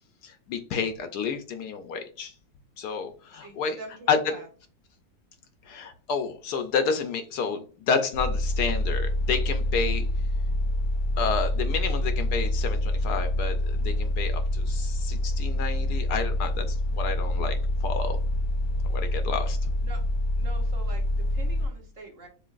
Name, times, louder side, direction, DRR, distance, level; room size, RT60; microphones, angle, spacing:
voice 1, 0.2-2.3 2.8-3.8 4.1-4.2 5.6-10.1 11.2-18.2 18.9-19.7, left 5 dB, 70° left, 7 dB, 1.1 m, -30 dB
voice 2, 3.4-4.5 19.8-20.0 20.4-22.3, right 3 dB, 50° right, 1 dB, 1.3 m, -44 dB
sound 1, 8.1-21.7, left 1 dB, 90° left, 2.0 m, -26 dB
6.8 x 2.8 x 2.4 m, 0.37 s
omnidirectional pair, 1.9 m